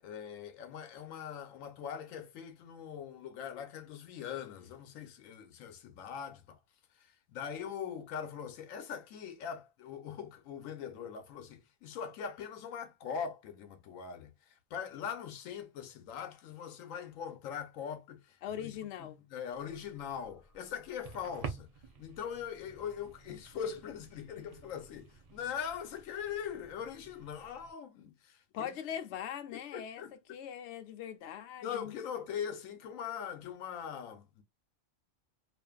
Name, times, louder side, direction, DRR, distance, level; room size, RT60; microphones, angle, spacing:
voice 1, 0.0-6.6 6.9-21.7 22.0-28.7 29.5-30.1 31.6-34.4, left 8 dB, 85° left, 1.0 m, -41 dB
voice 2, 18.4-19.2 28.5-30.0 30.3-31.9, left 9 dB, 70° left, 0.8 m, -41 dB
sound 1, 19.5-27.7, right 5 dB, 65° right, 0.3 m, -50 dB
2.5 x 2.5 x 2.2 m
omnidirectional pair, 1.3 m